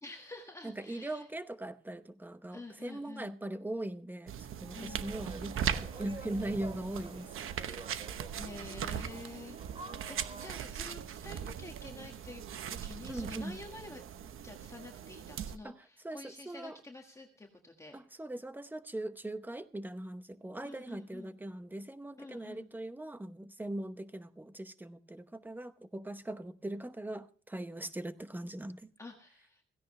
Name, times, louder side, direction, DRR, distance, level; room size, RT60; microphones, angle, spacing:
voice 1, 0.0-1.3 2.5-3.4 4.7-5.1 8.0-12.4 12.7-14.0 14.4-18.0 20.6-21.3 22.2-22.7 29.0-29.6, left 2 dB, 15° left, 1.6 m, -49 dB
voice 2, 0.6-4.3 4.6-7.3 13.1-13.6 15.6-15.8 16.0-16.7 17.9-28.8, right 1 dB, 10° right, 0.8 m, -40 dB
sound 1, 4.3-15.6, right 9 dB, 80° right, 1.0 m, -40 dB
sound 2, 4.9-10.6, right 3 dB, 25° right, 2.3 m, -50 dB
16.5 x 16.0 x 3.2 m
wide cardioid pair, 165°, 21 cm